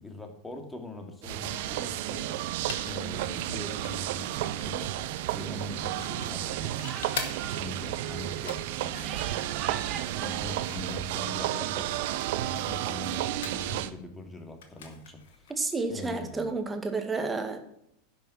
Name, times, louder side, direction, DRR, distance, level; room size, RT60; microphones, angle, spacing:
voice 1, 0.0-4.9 5.3-6.8 7.5-9.5 9.8-12.0 12.4-15.5 15.9-16.5, left 2 dB, 10° left, 4 dB, 2.5 m, -42 dB
sound 1, 1.2-13.9, right 13 dB, 65° right, 0.7 m, -32 dB
sound 2, 1.6-16.7, left 6 dB, 70° left, 2.0 m, -46 dB
sound 3, 4.2-10.9, right 8 dB, 45° right, 1.6 m, -42 dB
voice 2, 15.5-17.6, right 3 dB, 15° right, 5 dB, 2.0 m, -31 dB
11.0 x 5.6 x 7.3 m, 0.77 s
hypercardioid pair, 95°, 0 cm